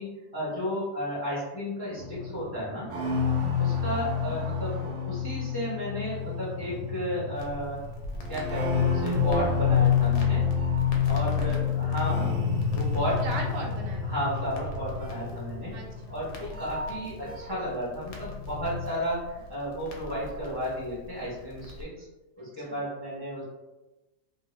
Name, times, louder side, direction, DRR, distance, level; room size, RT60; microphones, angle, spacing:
voice 1, 0.0-2.9 3.6-7.8 8.3-10.5 11.1-13.3 14.0-15.7 16.1-22.0 22.4-23.4, equal, 25° left, -8 dB, 0.5 m, -33 dB
sound 1, 2.0-17.8 18.0-18.9, left 6 dB, 65° right, 0.9 m, -28 dB
Crackle, 7.4-21.8, left 1 dB, 70° left, 1.0 m, -43 dB
voice 2, 11.4-11.8 12.2-12.4 13.2-14.0 15.7-16.6 17.0-17.2 22.4-22.8, right 2 dB, 90° right, 0 dB, 1.3 m, -40 dB
2.8 x 2.3 x 2.9 m, 1.1 s
omnidirectional pair, 1.8 m